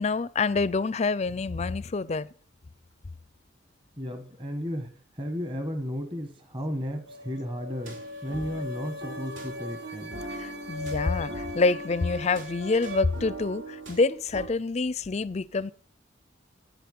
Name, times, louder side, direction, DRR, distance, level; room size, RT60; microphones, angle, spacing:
voice 1, 0.0-2.3 10.3-15.7, left 3 dB, 35° left, 0.4 m, -27 dB
voice 2, 4.0-10.2, equal, 25° right, 1.3 m, -34 dB
sound 1, 7.1-13.0, left 2 dB, 60° right, 1.2 m, -40 dB
sound 2, 7.8-14.5, right 1 dB, 85° right, 3.1 m, -41 dB
10.0 x 10.0 x 5.4 m
head